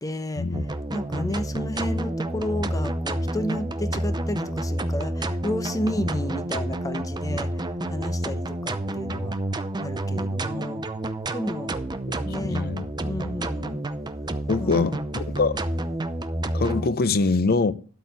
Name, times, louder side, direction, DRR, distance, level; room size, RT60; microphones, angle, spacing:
voice 1, 0.0-0.5 0.9-7.5 7.9-9.4 9.8-10.8 11.3-11.7 12.2-12.7 13.0-13.8 14.6-15.0, left 1 dB, 15° left, 0.9 m, -31 dB
sound 1, 0.5-16.9, right 1 dB, 20° right, 0.6 m, -29 dB
voice 2, 1.1-1.4 6.0-6.1 9.1-9.3 12.5-12.9 13.2-13.4 14.5-15.6 16.5-17.7, left 3 dB, 45° left, 0.6 m, -24 dB
12.5 x 4.2 x 8.1 m
head